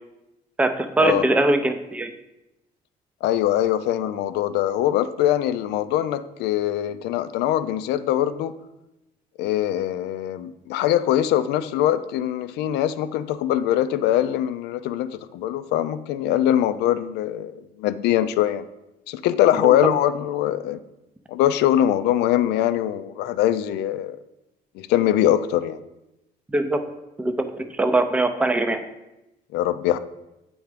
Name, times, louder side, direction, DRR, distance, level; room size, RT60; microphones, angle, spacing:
voice 1, 0.6-2.1 19.6-19.7 26.5-26.8 27.2-28.8, right 2 dB, 10° right, 8 dB, 0.5 m, -22 dB
voice 2, 3.2-8.5 9.4-17.5 17.8-18.6 19.1-20.8 21.3-24.2 24.8-25.8 29.5-30.0, left 12 dB, 85° left, 13 dB, 0.4 m, -22 dB
8.1 x 3.4 x 4.9 m, 0.94 s
cardioid pair, 110°, 17 cm